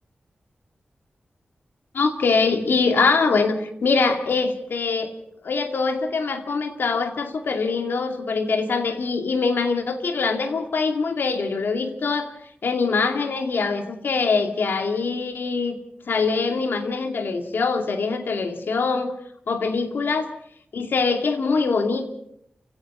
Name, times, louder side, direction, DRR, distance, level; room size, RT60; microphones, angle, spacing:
voice 1, 1.9-5.1 5.4-12.3 12.6-15.8 16.1-19.1 19.5-20.3 20.7-22.0, left 4 dB, 85° left, 6 dB, 2.4 m, -23 dB
29.5 x 17.0 x 5.5 m, 0.69 s
wide cardioid pair, 105°, 3 cm